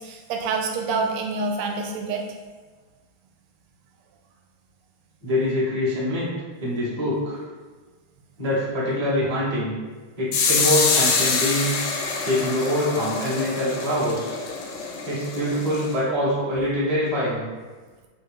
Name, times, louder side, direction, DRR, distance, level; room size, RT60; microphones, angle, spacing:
voice 1, 0.0-2.2, right 4 dB, 90° right, 2 dB, 1.5 m, -27 dB
voice 2, 5.2-6.3 6.6-7.4 8.4-9.7 10.2-11.8 12.2-14.4 15.0-17.4, left 1 dB, 30° right, -8 dB, 0.6 m, -24 dB
sound 1, 10.3-16.0, left 4 dB, 75° left, 1.3 m, -25 dB
4.1 x 2.3 x 3.4 m, 1.4 s
omnidirectional pair, 2.4 m